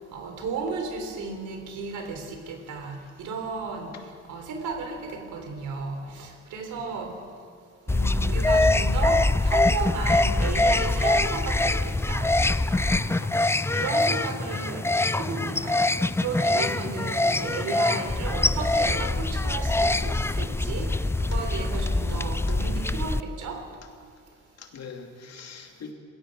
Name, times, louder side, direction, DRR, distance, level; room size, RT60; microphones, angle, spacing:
voice 1, 0.1-4.0 4.3-7.2 7.9-12.3 12.7-15.8 16.2-23.6, right 4 dB, 80° right, 4 dB, 3.9 m, -34 dB
sound 1, 7.9-23.2, left 2 dB, 10° left, 0.5 m, -24 dB
voice 2, 24.6-25.9, left 5 dB, 55° left, 3 dB, 2.9 m, -43 dB
21.0 x 17.5 x 7.7 m, 2.2 s
cardioid pair, 90°, 30 cm